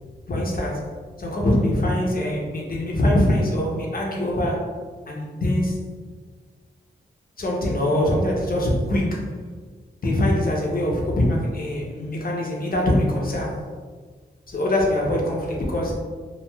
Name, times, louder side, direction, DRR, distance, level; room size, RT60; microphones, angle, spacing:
voice 1, 0.3-0.9 1.2-4.7 5.1-5.8 7.4-9.2 10.0-13.5 14.5-16.0, left 1 dB, 50° left, -2 dB, 0.7 m, -23 dB
3.1 x 2.4 x 2.2 m, 1.5 s
cardioid pair, 60°, 19 cm